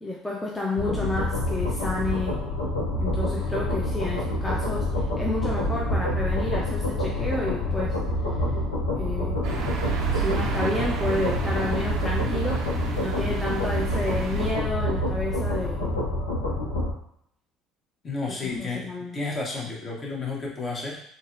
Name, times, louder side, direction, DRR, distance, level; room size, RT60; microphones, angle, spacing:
voice 1, 0.0-2.4 3.0-8.0 8.9-9.5 10.1-12.7 12.9-15.9 18.4-19.2, left 2 dB, 10° left, -4 dB, 0.6 m, -30 dB
sound 1, 0.8-16.9, left 1 dB, 85° left, 0.5 m, -27 dB
sound 2, 9.4-14.5, right 7 dB, 60° right, 0.5 m, -31 dB
voice 2, 18.0-21.0, left 3 dB, 35° left, -2 dB, 0.9 m, -32 dB
3.9 x 2.1 x 2.5 m, 0.72 s
figure-of-eight pair, 60°, 0 cm